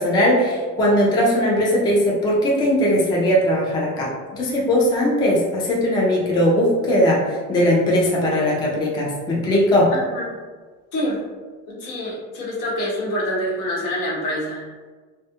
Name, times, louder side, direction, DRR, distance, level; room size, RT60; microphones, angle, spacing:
voice 1, 0.0-9.9, equal, 15° left, -4 dB, 0.3 m, -19 dB
voice 2, 9.9-10.2 10.9-11.2 11.7-14.7, equal, 65° left, -5 dB, 1.0 m, -26 dB
2.2 x 2.1 x 2.8 m, 1.4 s
cardioid pair, 120°, 36 cm